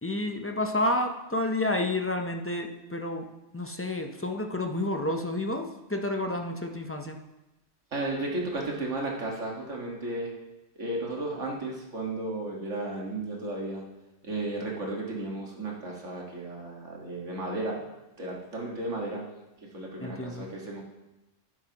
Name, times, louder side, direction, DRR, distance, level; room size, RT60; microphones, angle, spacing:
voice 1, 0.0-3.3 3.5-7.2 20.0-20.5, left 1 dB, 15° left, 4 dB, 0.4 m, -30 dB
voice 2, 7.9-10.3 10.8-13.8 14.2-17.8 18.2-19.2 19.7-20.8, right 2 dB, 85° right, -2 dB, 2.0 m, -34 dB
11.0 x 10.5 x 2.9 m, 1.0 s
omnidirectional pair, 1.2 m